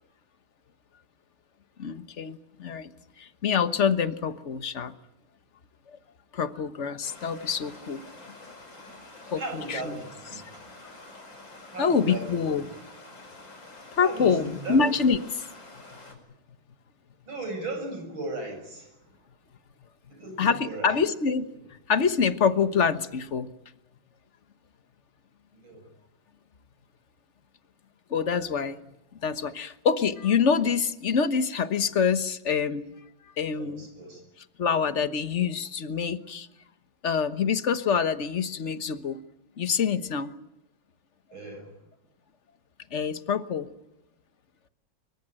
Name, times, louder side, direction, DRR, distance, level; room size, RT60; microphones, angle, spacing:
voice 1, 1.8-2.9 3.2-4.9 6.3-8.0 9.3-10.0 11.8-12.6 13.9-15.4 20.4-21.5 21.9-23.5 28.1-28.8 29.2-32.9 33.4-33.9 34.6-36.5 37.0-39.2 39.6-40.4 42.9-43.7, left 6 dB, 40° left, 11 dB, 1.3 m, -26 dB
Stream, 7.0-16.1, left 2 dB, 65° left, 5.9 m, -47 dB
voice 2, 9.4-10.4 11.7-12.7 14.0-14.8 17.3-19.0 20.1-21.0 25.6-25.8 33.6-34.2 41.3-41.7, right 2 dB, 75° right, 6 dB, 7.7 m, -37 dB
25.0 x 23.0 x 9.0 m, 0.92 s
omnidirectional pair, 2.2 m